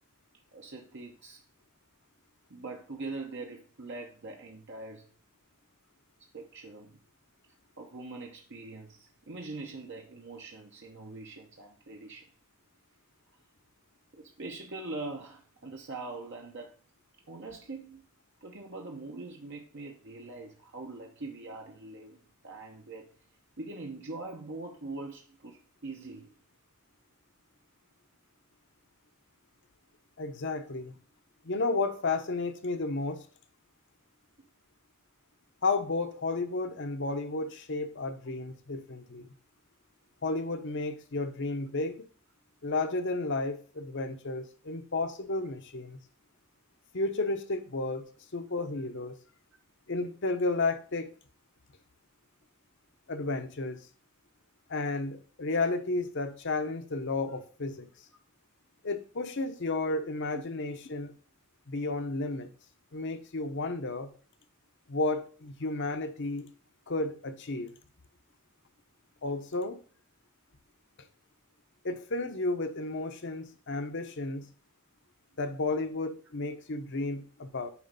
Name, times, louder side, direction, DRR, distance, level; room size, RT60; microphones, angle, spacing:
voice 1, 0.5-1.4 2.5-5.1 6.3-7.0 7.8-12.3 14.1-16.7 17.3-18.0 18.4-23.1 23.6-26.3 60.3-60.4, right 3 dB, 55° right, 0.9 m, -42 dB
voice 2, 30.2-31.0 31.4-33.2 35.6-39.3 40.2-42.1 42.6-46.0 46.9-48.1 48.3-49.1 49.9-51.1 53.1-53.9 54.7-57.9 58.8-61.1 61.7-62.5 62.9-64.1 64.9-66.5 66.9-67.7 69.2-69.8 71.8-74.5 75.4-77.7, left 3 dB, 55° left, 0.9 m, -32 dB
9.4 x 3.2 x 5.3 m
head